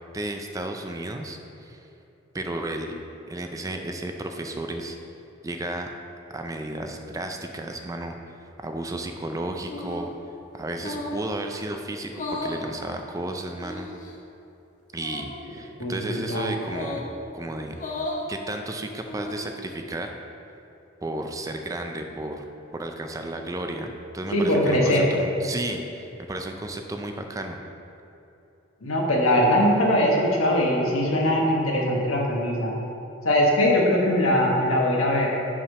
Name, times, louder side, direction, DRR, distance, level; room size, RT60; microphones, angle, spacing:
voice 1, 0.1-1.9 2.3-3.0 3.3-5.0 5.4-5.9 6.3-8.1 8.6-10.1 10.5-13.9 14.9-17.1 17.3-20.1 21.0-22.4 22.7-27.6, right 1 dB, 15° right, 4 dB, 0.4 m, -33 dB
sound 1, 9.6-10.1 10.7-11.2 12.1-12.6 13.6-14.1 14.9-15.3 16.6-17.1 17.7-18.2 18.9-19.5, left 2 dB, 40° left, 0.8 m, -34 dB
voice 2, 15.8-16.6 24.3-25.1 28.8-32.7 33.2-35.3, left 1 dB, 80° left, -2 dB, 1.2 m, -21 dB
5.7 x 4.9 x 5.5 m, 2.9 s
head